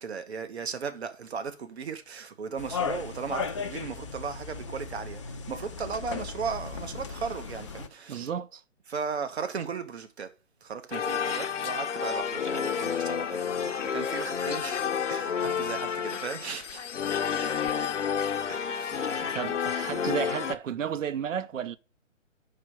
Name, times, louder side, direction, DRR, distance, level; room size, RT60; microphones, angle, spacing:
voice 1, 0.0-8.3 8.9-10.3 10.6-14.8 15.1-16.8 17.2-18.1 18.5-19.1, right 6 dB, 55° right, 1.1 m, -37 dB
sound 1, 2.6-7.9, left 5 dB, 25° left, 0.5 m, -36 dB
voice 2, 8.1-8.6 19.3-21.8, right 8 dB, 80° right, 0.6 m, -32 dB
sound 2, 10.9-20.5, left 7 dB, 70° left, 0.8 m, -30 dB
4.9 x 4.8 x 6.0 m
figure-of-eight pair, 145°, 38 cm